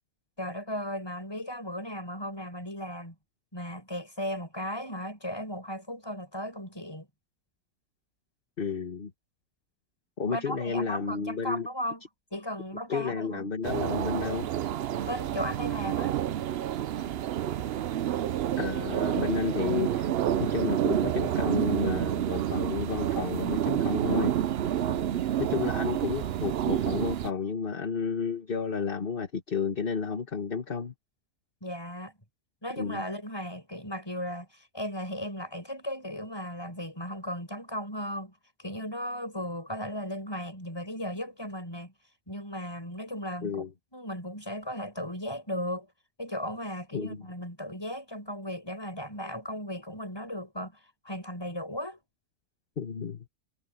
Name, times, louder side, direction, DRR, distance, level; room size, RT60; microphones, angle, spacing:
voice 1, 0.4-3.2 3.5-7.1 10.3-12.0 12.3-13.5 15.1-16.2 24.8-25.2 31.6-32.1 32.6-38.3 38.6-41.9 42.3-43.6 43.9-45.9 46.2-52.0, equal, 15° left, 7.2 m, -36 dB
voice 2, 8.6-9.1 10.2-11.7 12.9-14.5 18.6-20.1 20.4-24.3 25.4-30.9 32.8-33.0 43.4-43.7 46.9-47.2 52.8-53.3, left 5 dB, 35° left, 1.4 m, -31 dB
sound 1, 13.6-27.3, right 11 dB, 80° right, 0.5 m, -29 dB
omnidirectional pair, 1.7 m